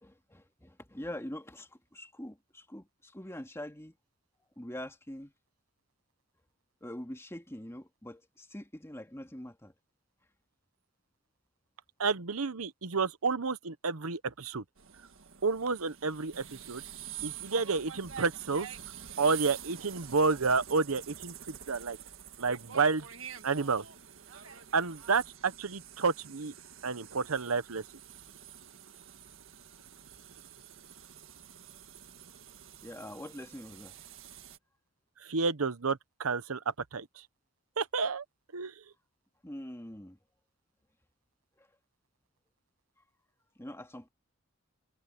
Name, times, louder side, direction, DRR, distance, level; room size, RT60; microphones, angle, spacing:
voice 1, 0.0-4.0 4.6-5.3 6.8-9.7 32.8-34.0 39.4-40.2 41.6-41.7 43.6-44.1, left 1 dB, 15° left, 2.3 m, -44 dB
voice 2, 12.0-14.6 15.4-16.8 17.2-18.7 19.2-22.0 22.4-23.1 23.4-23.8 24.7-26.5 26.8-27.8 35.3-36.6 36.9-37.1 37.8-38.2 38.5-38.7, right 4 dB, 85° right, 1.0 m, -30 dB
sound 1, 14.8-34.6, right 9 dB, 65° right, 1.8 m, -47 dB
head